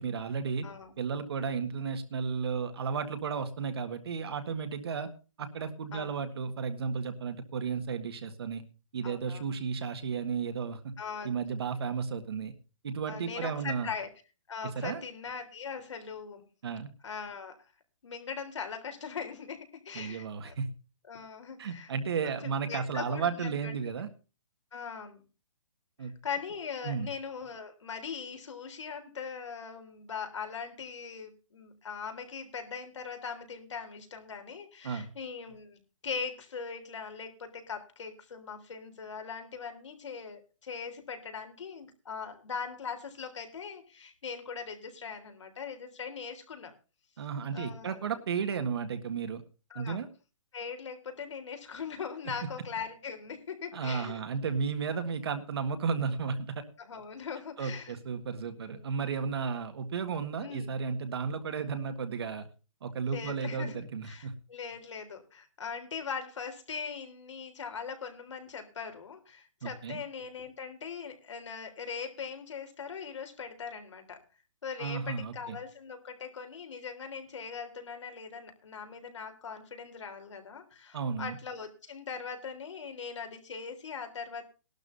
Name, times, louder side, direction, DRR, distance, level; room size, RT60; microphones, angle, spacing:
voice 1, 0.0-0.7 1.0-5.1 5.4-8.6 8.9-10.8 11.2-12.5 12.8-13.9 14.7-15.0 16.6-16.9 19.9-20.7 21.6-24.1 26.0-26.1 26.8-27.1 34.8-35.1 47.2-49.4 49.7-50.1 53.7-56.6 57.6-62.5 62.8-64.3 69.6-70.0 74.8-75.6 80.9-81.4, right 5 dB, 50° right, 8 dB, 1.7 m, -33 dB
voice 2, 0.6-1.0 5.9-6.2 9.0-9.5 11.0-11.3 13.1-14.1 14.5-16.4 17.0-17.7 18.0-20.5 21.1-21.9 22.2-23.7 24.7-25.3 26.0-46.7 47.5-48.0 49.7-50.0 50.5-54.2 56.8-58.0 58.6-58.9 60.4-60.7 63.1-74.2 74.6-84.4, left 6 dB, 65° left, 6 dB, 3.6 m, -40 dB
19.0 x 12.0 x 2.6 m, 0.32 s
hypercardioid pair, 175°, 17 cm